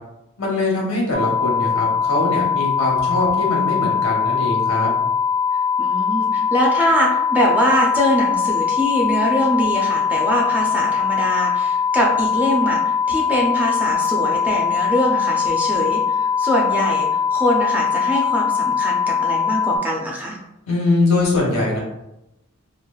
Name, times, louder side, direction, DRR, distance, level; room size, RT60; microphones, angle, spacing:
voice 1, 0.4-4.9 20.7-21.8, left 2 dB, 85° left, -3 dB, 1.0 m, -22 dB
sound 1, 1.1-19.8, left 6 dB, 70° right, 1.0 m, -21 dB
voice 2, 5.8-20.4, equal, 5° right, -2 dB, 0.4 m, -22 dB
3.1 x 2.4 x 2.3 m, 0.89 s
head